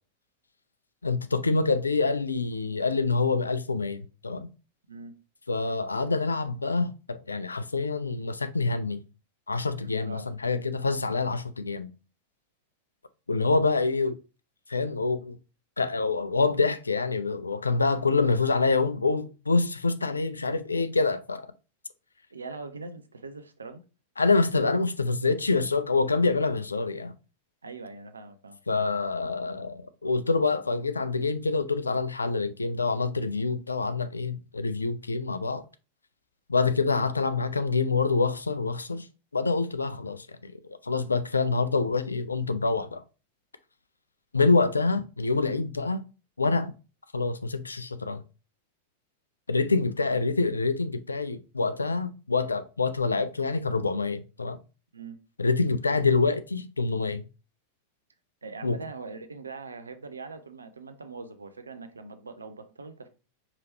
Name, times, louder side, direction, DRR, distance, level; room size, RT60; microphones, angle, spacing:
voice 1, 1.0-4.5 5.5-9.0 9.5-11.9 13.3-14.2 14.7-15.4 15.8-21.5 24.2-27.1 28.7-35.6 36.5-39.1 39.3-40.5 40.8-43.0 44.3-46.0 46.4-46.7 47.1-48.2 49.5-54.6 55.4-57.2 58.6-58.8, left 3 dB, 80° left, 0.4 m, -26 dB
voice 2, 10.0-10.4 22.3-23.8 27.6-28.6 54.9-55.2 58.4-63.1, right 4 dB, 75° right, 0.5 m, -42 dB
4.8 x 3.0 x 3.0 m
figure-of-eight pair, 90°, 0 cm